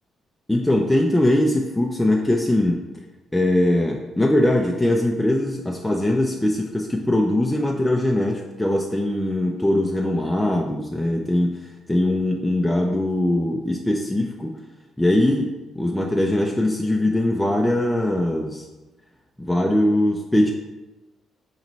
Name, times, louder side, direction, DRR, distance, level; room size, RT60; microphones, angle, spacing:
voice 1, 0.5-2.8 3.3-14.5 15.0-18.7 19.4-20.5, left 1 dB, 10° left, 0 dB, 0.4 m, -21 dB
4.3 x 3.0 x 4.0 m, 1.1 s
cardioid pair, 90°, 0 cm